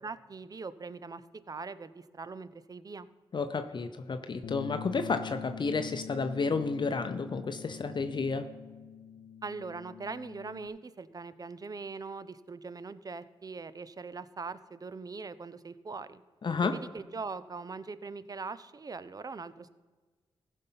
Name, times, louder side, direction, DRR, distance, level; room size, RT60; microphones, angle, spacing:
voice 1, 0.0-3.1 9.4-16.2 16.6-19.7, right 4 dB, 40° right, 15 dB, 0.6 m, -41 dB
voice 2, 3.3-8.5 16.4-16.7, left 4 dB, 50° left, 7 dB, 0.7 m, -31 dB
Bass guitar, 4.4-10.7, left 8 dB, 90° left, 0.5 m, -44 dB
15.0 x 5.4 x 5.7 m, 1.3 s
cardioid pair, 60°, 10 cm